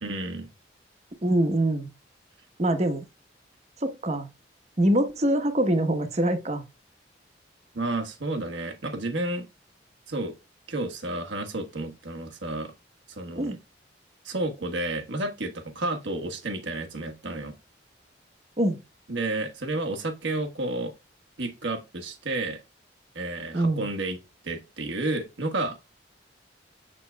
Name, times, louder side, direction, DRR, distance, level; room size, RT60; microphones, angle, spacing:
voice 1, 0.0-0.5 7.7-9.5 10.1-10.3 10.7-12.7 13.1-13.6 14.2-17.5 19.1-20.9 21.4-22.6 23.1-24.2 24.4-26.0, right 2 dB, 75° right, 1.4 m, -31 dB
voice 2, 1.2-1.9 2.6-3.0 3.8-4.3 4.8-6.6 13.4-13.6 18.6-18.8 23.5-23.9, right 1 dB, 35° right, 1.1 m, -24 dB
7.7 x 7.5 x 2.3 m
head